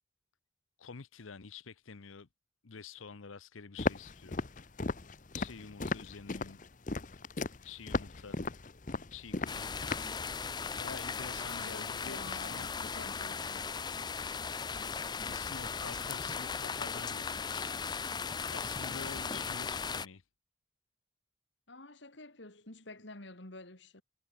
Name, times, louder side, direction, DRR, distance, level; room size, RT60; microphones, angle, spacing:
voice 1, 0.8-2.3 2.6-4.4 5.3-6.6 7.6-8.4 9.1-9.7 10.8-12.7 15.3-17.7 18.5-20.2, left 5 dB, 85° left, 0.8 m, -48 dB
Walk footsteps, 3.8-10.2, left 3 dB, 40° left, 0.8 m, -36 dB
sound 1, 9.5-20.1, left 5 dB, 20° left, 0.4 m, -37 dB
voice 2, 11.3-13.7 21.7-24.0, left 2 dB, 65° left, 3.0 m, -49 dB
head